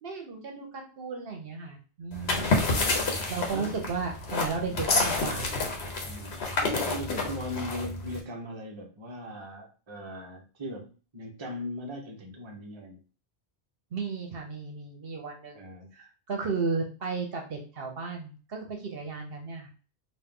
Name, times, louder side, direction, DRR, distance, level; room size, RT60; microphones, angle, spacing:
voice 1, 0.0-2.6 3.3-5.5 13.9-15.6 15.9-19.7, right 4 dB, 65° right, 2 dB, 1.0 m, -34 dB
sound 1, 2.1-8.2, left 3 dB, 80° left, 1.2 m, -29 dB
voice 2, 2.1-3.0 3.5-3.8 4.7-5.1 6.0-6.4 6.7-13.0 15.5-15.9, left 1 dB, 30° right, 0 dB, 0.8 m, -39 dB
4.2 x 2.4 x 3.6 m, 0.37 s
omnidirectional pair, 1.1 m